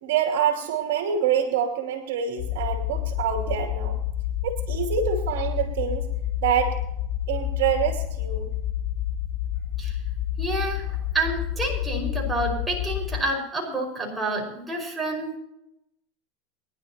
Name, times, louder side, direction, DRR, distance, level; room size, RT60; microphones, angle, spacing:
voice 1, 0.0-4.0 4.4-6.1 6.4-6.8 7.3-8.5, right 8 dB, 70° right, 2 dB, 2.7 m, -26 dB
sound 1, 2.4-13.2, left 11 dB, 70° left, 1.0 m, -29 dB
voice 2, 10.4-15.4, right 2 dB, 10° right, -2 dB, 5.5 m, -29 dB
23.0 x 11.5 x 2.9 m, 0.83 s
hypercardioid pair, 105°, 0 cm